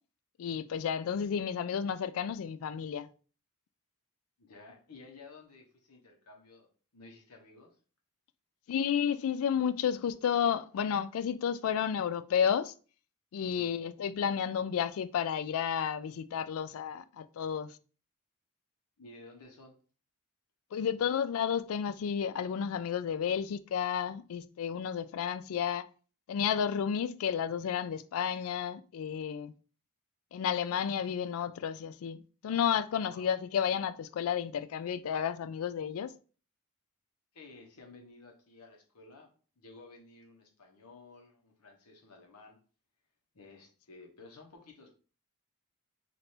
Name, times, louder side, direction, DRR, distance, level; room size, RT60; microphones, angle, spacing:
voice 1, 0.4-3.1 8.7-12.7 13.3-17.7 20.7-25.9 26.3-29.5 30.3-36.1, left 8 dB, 65° left, 0.3 m, -32 dB
voice 2, 4.4-7.8 13.4-13.7 19.0-19.8 33.0-33.5 37.3-42.6 43.3-44.9, left 3 dB, 85° left, 1.1 m, -54 dB
3.3 x 2.6 x 4.3 m
head